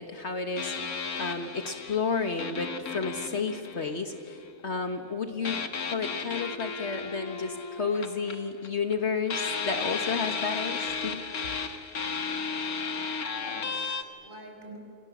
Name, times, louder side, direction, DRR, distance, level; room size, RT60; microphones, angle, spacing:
voice 1, 0.0-11.2, left 4 dB, 50° left, 6 dB, 1.6 m, -32 dB
sound 1, 0.6-4.4 5.4-9.0 9.3-14.0, left 5 dB, 90° left, 2.0 m, -34 dB
voice 2, 12.9-14.8, right 1 dB, 35° right, 1 dB, 5.4 m, -47 dB
28.5 x 27.5 x 7.3 m, 2.5 s
omnidirectional pair, 1.5 m